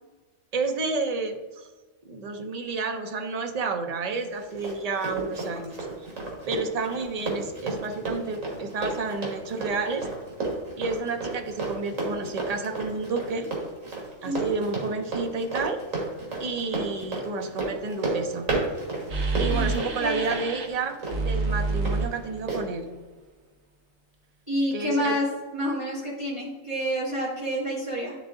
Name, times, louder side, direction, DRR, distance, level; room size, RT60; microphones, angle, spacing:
voice 1, 0.5-1.7 2.0-5.8 6.5-10.1 10.8-13.5 14.2-15.8 16.4-18.5 19.4-22.9 24.7-25.2, right 4 dB, 40° right, 5 dB, 0.6 m, -30 dB
Run, 4.2-22.0 22.5-22.6, right 3 dB, 85° right, 2.2 m, -33 dB
voice 2, 14.2-14.5 19.5-19.7 20.0-20.4 24.5-25.3 25.5-28.2, equal, 25° right, -8 dB, 1.7 m, -28 dB
sound 1, 19.1-20.7 21.1-22.8, right 3 dB, 60° right, 1.2 m, -28 dB
10.5 x 3.6 x 3.7 m, 1.3 s
omnidirectional pair, 1.3 m